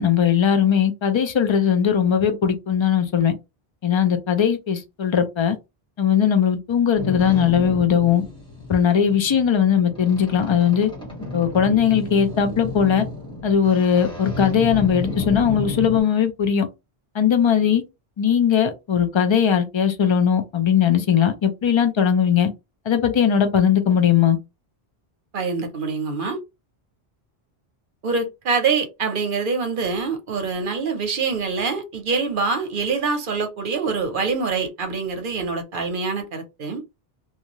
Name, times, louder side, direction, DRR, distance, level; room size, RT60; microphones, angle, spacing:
voice 1, 0.0-3.3 3.8-5.5 6.0-8.2 8.7-10.9 11.3-13.0 13.4-16.7 17.2-17.8 18.2-22.5 22.9-24.4, left 8 dB, 50° left, 0.3 m, -19 dB
Boat Water vehicle, 6.9-16.0, left 2 dB, 5° left, 1.3 m, -32 dB
voice 2, 25.3-26.4 28.0-36.8, right 4 dB, 60° right, 0.8 m, -25 dB
2.6 x 2.3 x 2.9 m
omnidirectional pair, 1.0 m